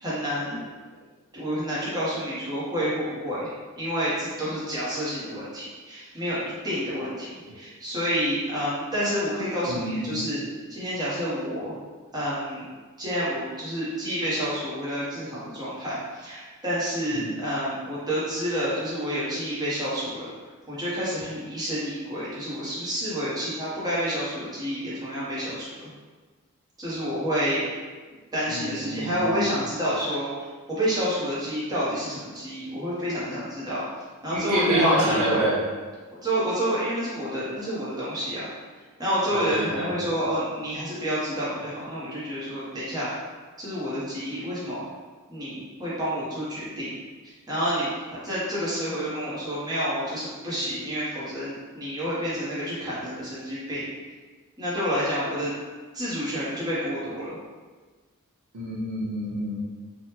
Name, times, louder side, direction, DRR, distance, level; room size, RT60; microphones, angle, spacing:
voice 1, 0.0-0.6 1.3-6.4 6.6-10.4 10.7-11.7 12.1-12.7 13.0-20.3 20.7-25.9 26.8-27.6 28.3-30.3 30.7-33.8 34.2-35.4 36.2-38.5 39.0-43.1 43.6-44.8 45.3-46.9 47.2-53.9 54.6-55.5 55.9-57.4, equal, 20° right, -9 dB, 0.9 m, -29 dB
voice 2, 9.7-10.2 17.1-17.3 28.4-29.4 34.3-35.6 39.3-40.0 58.5-59.6, right 1 dB, 85° right, -8 dB, 0.9 m, -27 dB
3.4 x 2.2 x 2.9 m, 1.4 s
head